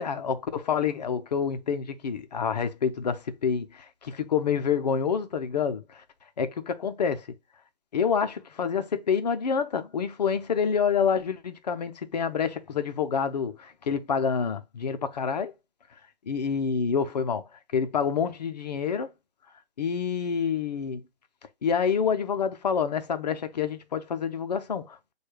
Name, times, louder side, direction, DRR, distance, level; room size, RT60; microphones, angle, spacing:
voice 1, 0.0-6.0 6.4-7.3 7.9-15.5 16.3-17.4 17.7-19.1 19.8-21.0 21.6-25.1, left 6 dB, 40° left, 0.5 m, -27 dB
6.2 x 2.3 x 3.2 m
hypercardioid pair, 160°, 31 cm